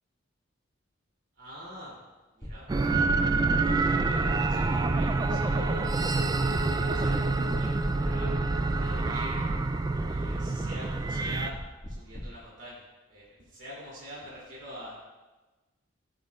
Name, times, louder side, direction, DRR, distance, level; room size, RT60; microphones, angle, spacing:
voice 1, 1.3-2.0 2.3-5.8 6.1-7.2 7.5-8.4 8.8-9.5 10.1-11.5 11.9-15.1, equal, 65° right, -7 dB, 2.8 m, -46 dB
sound 1, 2.4-12.2, equal, 20° left, 1.6 m, -40 dB
sound 2, 2.7-11.5, right 3 dB, 20° right, 0.3 m, -27 dB
13.5 x 8.5 x 2.4 m, 1.2 s
head